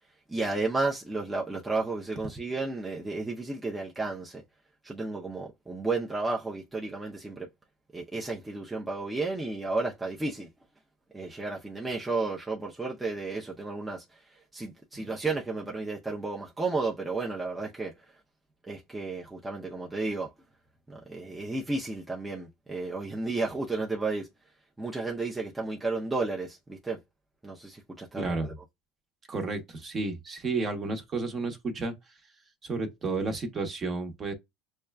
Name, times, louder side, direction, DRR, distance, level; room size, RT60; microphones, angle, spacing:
voice 1, 0.3-4.4 4.8-7.5 7.9-10.5 11.1-17.9 18.7-20.3 20.9-24.3 24.8-27.0 27.4-28.5, right 3 dB, 10° right, 0.6 m, -32 dB
voice 2, 28.1-28.5 29.3-31.9 32.6-34.3, right 3 dB, 30° right, 1.0 m, -32 dB
6.2 x 2.3 x 2.2 m
supercardioid pair, 100°, 0 cm